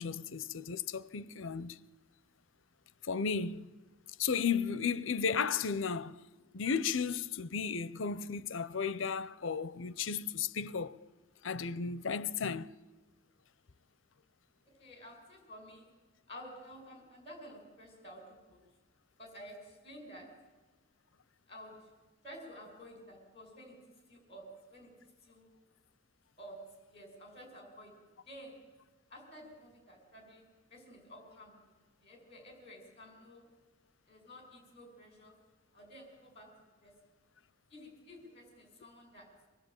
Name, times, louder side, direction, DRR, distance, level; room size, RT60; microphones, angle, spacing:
voice 1, 0.0-1.8 3.0-3.7 4.2-6.2 6.5-11.0 11.4-12.7, left 6 dB, 80° left, 0.7 m, -34 dB
voice 2, 14.8-15.9 16.3-18.6 19.2-20.4 21.5-21.9 22.2-25.0 25.2-25.5 26.4-28.6 29.1-30.4 30.7-31.6 32.0-33.5 34.1-35.4 35.7-36.9 37.7-39.3, equal, 30° left, 5.7 m, -52 dB
25.0 x 19.5 x 8.9 m
head